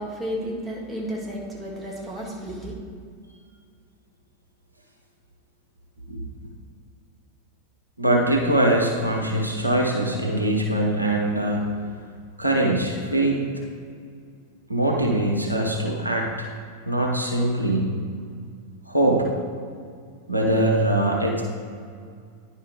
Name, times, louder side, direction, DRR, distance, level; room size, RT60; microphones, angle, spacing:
voice 1, 0.0-2.7, equal, 15° right, -2 dB, 1.5 m, -32 dB
voice 2, 8.0-11.7 12.4-13.4 14.7-16.5 16.9-17.9 18.9-19.3 20.3-21.4, right 1 dB, 85° right, -1 dB, 1.0 m, -22 dB
10.0 x 5.0 x 3.4 m, 2.2 s
figure-of-eight pair, 90°, 0 cm